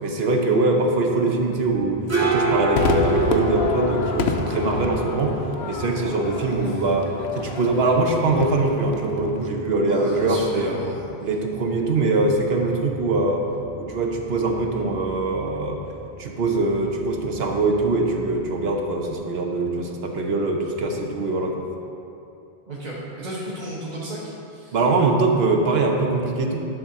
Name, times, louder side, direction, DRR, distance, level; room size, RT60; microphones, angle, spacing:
voice 1, 0.0-5.4 5.7-10.8 11.2-13.4 13.8-15.8 16.2-21.6 24.7-26.6, right 2 dB, 70° right, 2 dB, 1.1 m, -22 dB
sound 1, 1.7-19.1, right 2 dB, 15° right, 0.9 m, -31 dB
Crowd / Fireworks, 2.8-9.3, left 5 dB, 80° left, 0.9 m, -30 dB
voice 2, 6.3-6.8 9.9-11.0 22.7-24.8, right 1 dB, 45° right, -7 dB, 1.3 m, -34 dB
11.5 x 3.8 x 6.7 m, 2.8 s
omnidirectional pair, 1.1 m